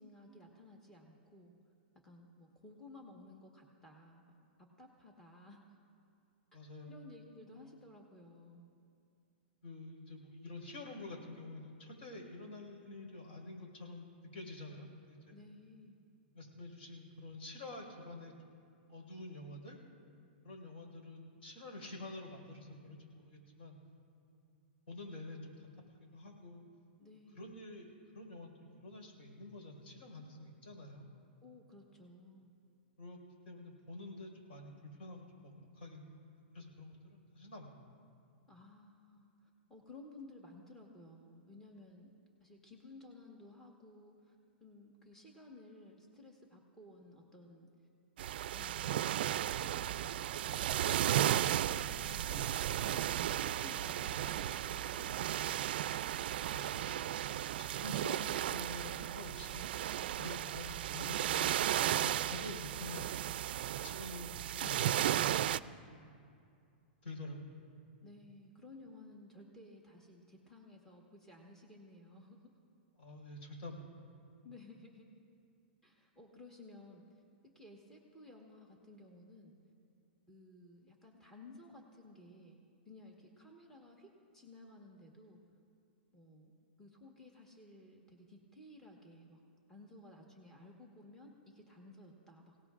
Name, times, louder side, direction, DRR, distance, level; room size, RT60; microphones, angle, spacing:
voice 1, 0.0-1.5 2.0-4.4 4.8-5.6 6.5-6.6 6.8-8.7 15.3-16.0 27.0-27.6 31.4-32.5 38.5-42.1 42.4-44.3 44.6-47.7 48.5-55.6 68.0-72.4 74.4-75.1 75.8-77.2 77.5-79.5 80.3-82.6 82.8-85.4 86.1-86.5 86.8-89.4 89.7-92.7, left 2 dB, 5° left, -2 dB, 1.4 m, -56 dB
voice 2, 6.5-6.9 9.6-15.4 16.3-18.6 18.9-19.8 20.4-23.8 24.3-24.5 24.9-26.6 27.3-31.1 33.0-33.2 33.4-37.9 56.3-57.3 57.6-59.7 60.2-61.5 61.8-63.3 63.8-66.2 67.0-67.6 73.0-74.1, left 2 dB, 75° left, 0 dB, 4.8 m, -49 dB
sound 1, 48.2-65.6, right 11 dB, 65° right, 0.4 m, -35 dB
26.0 x 17.5 x 2.5 m, 2.4 s
hypercardioid pair, 155°, 6 cm